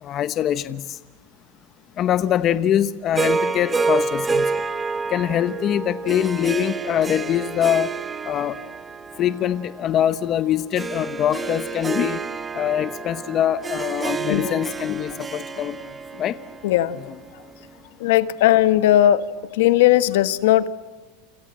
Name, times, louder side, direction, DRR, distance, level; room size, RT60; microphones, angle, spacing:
voice 1, 0.0-1.0 2.0-4.6 5.1-7.9 8.2-8.6 9.2-12.2 12.5-15.9 16.2-16.4, left 10 dB, 35° left, 14 dB, 1.0 m, -23 dB
Harp, 3.1-17.5, right 4 dB, 15° right, 1.2 m, -28 dB
voice 2, 16.6-17.0 18.0-19.2 19.5-20.7, left 13 dB, 75° left, 13 dB, 1.6 m, -17 dB
29.0 x 27.0 x 7.6 m, 1.2 s
supercardioid pair, 135°, 0 cm